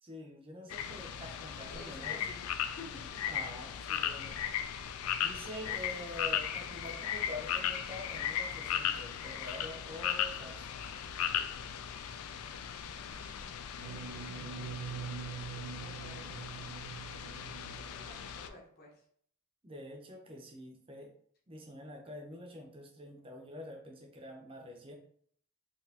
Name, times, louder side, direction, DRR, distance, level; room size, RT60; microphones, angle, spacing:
voice 1, 0.0-2.2 3.3-4.3 5.2-10.7 19.6-21.1 21.5-24.9, left 1 dB, 25° right, 1 dB, 0.6 m, -46 dB
sound 1, 0.7-18.5, left 9 dB, 75° left, 0.3 m, -37 dB
voice 2, 1.7-2.4 2.8-2.9 3.1-3.2 15.7-16.3 17.9-19.0, left 3 dB, 45° left, -3 dB, 1.0 m, -54 dB
sound 2, 13.8-18.3, right 6 dB, 65° right, 0.6 m, -44 dB
4.0 x 2.8 x 2.8 m, 0.62 s
head